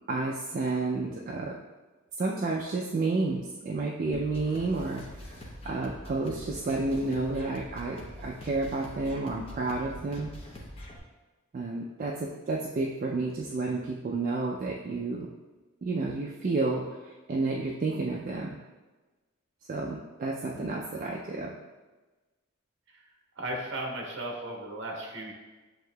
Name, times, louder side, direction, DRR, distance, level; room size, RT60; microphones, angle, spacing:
voice 1, 0.1-1.6 2.2-5.4 5.6-10.3 11.5-15.3 15.8-18.6 19.7-21.6, right 3 dB, 40° right, -2 dB, 0.3 m, -31 dB
sound 1, 4.1-11.0, equal, 30° left, 0.7 m, -44 dB
voice 2, 23.4-25.3, right 1 dB, 60° right, 0 dB, 0.9 m, -36 dB
7.7 x 2.8 x 2.2 m, 1.2 s
head